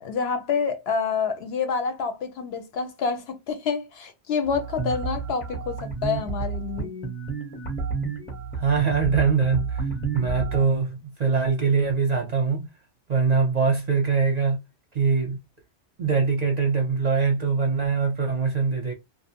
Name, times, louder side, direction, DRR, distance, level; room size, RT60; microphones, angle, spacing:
voice 1, 0.0-6.9, left 5 dB, 65° left, 0.8 m, -28 dB
sound 1, 4.5-10.7, right 5 dB, 15° left, 0.5 m, -30 dB
voice 2, 8.6-9.8 10.1-12.7 13.1-14.6 14.9-15.4 16.0-18.9, right 5 dB, 45° right, 0.6 m, -23 dB
2.6 x 2.0 x 2.7 m
omnidirectional pair, 1.2 m